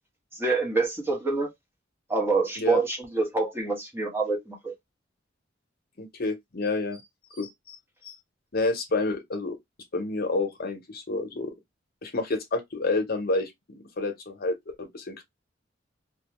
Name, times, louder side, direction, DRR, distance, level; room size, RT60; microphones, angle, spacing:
voice 1, 0.4-1.5 2.1-4.7, right 3 dB, 10° right, 0.9 m, -26 dB
voice 2, 6.0-7.0 7.3-7.8 8.0-8.2 8.5-9.6 9.9-11.5 12.0-15.2, left 3 dB, 55° left, 0.8 m, -29 dB
2.4 x 2.2 x 2.9 m
head